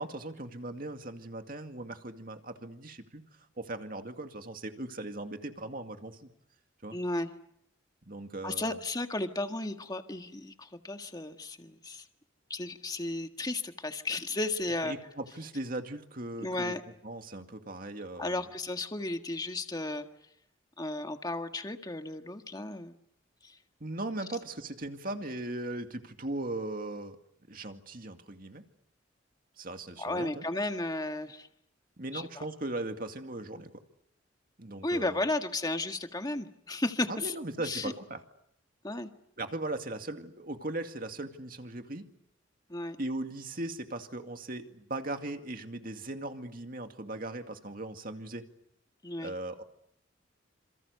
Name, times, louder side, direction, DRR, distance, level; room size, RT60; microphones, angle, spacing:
voice 1, 0.0-3.2 3.6-6.3 6.8-7.0 8.1-8.8 14.7-16.7 17.0-18.4 23.8-27.2 27.5-28.6 29.6-30.4 32.0-33.7 34.6-35.2 37.1-38.2 39.4-42.1 43.0-48.4 49.2-49.6, right 2 dB, 45° right, 6 dB, 2.3 m, -38 dB
voice 2, 6.9-7.3 8.4-12.1 12.5-15.0 16.4-16.8 18.2-20.1 20.8-23.0 23.4-23.6 30.0-31.5 32.1-32.4 34.8-37.9 38.8-39.1 42.7-43.0 49.0-49.3, left 2 dB, 20° left, 6 dB, 1.7 m, -34 dB
28.0 x 27.5 x 6.8 m, 0.74 s
head